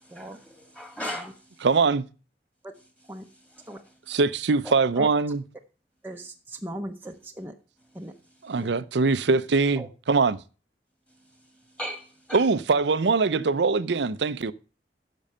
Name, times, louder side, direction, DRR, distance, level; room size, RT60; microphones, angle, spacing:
voice 1, 0.1-1.3 3.7-3.8 4.6-4.7 11.8-12.4, equal, 5° left, 1.9 m, -36 dB
voice 2, 1.6-2.0 4.1-5.4 8.4-10.4 12.3-14.5, right 4 dB, 75° right, 0.6 m, -22 dB
voice 3, 6.6-7.5 8.0-8.1 8.6-8.7 9.8-9.9, equal, 10° right, 0.7 m, -37 dB
10.5 x 6.2 x 5.5 m
head